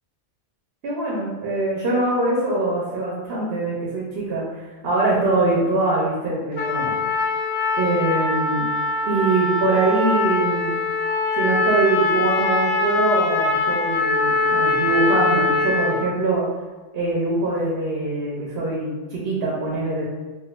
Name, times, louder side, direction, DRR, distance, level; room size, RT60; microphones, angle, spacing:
voice 1, 0.8-7.0 7.7-8.7 9.1-10.7 11.3-16.4 16.9-20.1, right 2 dB, 60° right, -5 dB, 0.9 m, -23 dB
Trumpet, 6.6-16.1, left 3 dB, 60° left, 0.8 m, -22 dB
3.6 x 2.5 x 2.4 m, 1.3 s
omnidirectional pair, 1.3 m